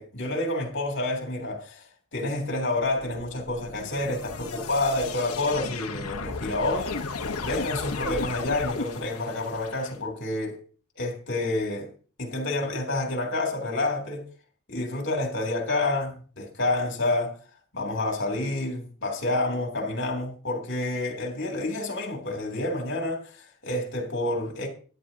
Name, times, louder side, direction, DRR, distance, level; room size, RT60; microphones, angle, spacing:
voice 1, 0.0-1.8 2.1-7.0 7.4-10.6 11.0-11.9 12.2-14.2 14.7-17.4 17.7-24.7, left 2 dB, 55° left, 3.1 m, -28 dB
sound 1, 2.9-9.9, left 4 dB, 90° left, 1.2 m, -35 dB
13.0 x 11.0 x 2.8 m
head